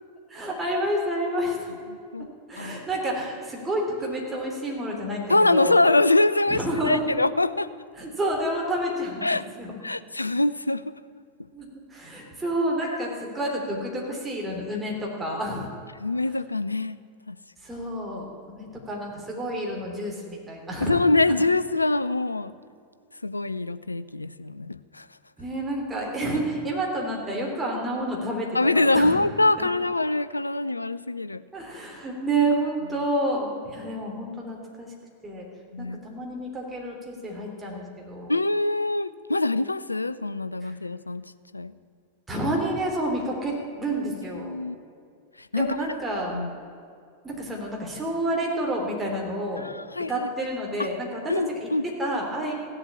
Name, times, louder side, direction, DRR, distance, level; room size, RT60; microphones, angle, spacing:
voice 1, 0.3-1.8 2.5-5.8 6.5-7.1 8.0-9.2 9.6-9.8 11.5-11.7 11.9-15.7 17.6-21.0 21.3-21.4 25.4-29.2 29.6-29.7 31.5-34.9 35.2-35.5 35.8-38.3 40.6-40.7 42.3-44.5 45.6-46.4 47.2-49.7 50.1-51.3 51.6-52.5, right 1 dB, 15° right, -1 dB, 3.5 m, -29 dB
voice 2, 1.9-2.3 2.6-2.8 5.3-7.7 9.2-9.4 9.8-10.8 12.8-13.0 16.0-17.0 17.3-17.4 20.8-22.5 23.2-25.1 28.5-31.4 35.7-36.0 38.3-41.2 41.5-41.7 44.3-44.8 45.4-45.8 46.3-46.5 49.6-50.3 51.3-51.8, left 2 dB, 85° left, 15 dB, 0.4 m, -24 dB
16.0 x 8.0 x 8.5 m, 2.3 s
figure-of-eight pair, 90°, 0 cm